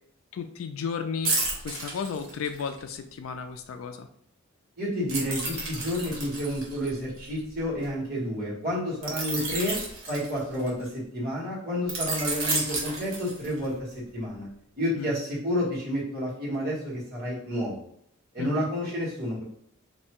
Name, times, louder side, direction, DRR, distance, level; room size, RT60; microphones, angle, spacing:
voice 1, 0.3-1.4 1.6-4.1 14.9-15.1 18.4-18.7, left 6 dB, 80° left, 8 dB, 0.3 m, -34 dB
sound 1, 1.2-2.8 5.1-7.8 9.0-10.9 11.9-13.7 14.2-14.4, right 2 dB, 80° right, 0.9 m, -31 dB
voice 2, 4.8-9.8 10.1-14.5 14.8-17.7 18.3-19.4, equal, 50° right, -6 dB, 1.3 m, -30 dB
2.6 x 2.2 x 2.8 m, 0.69 s
head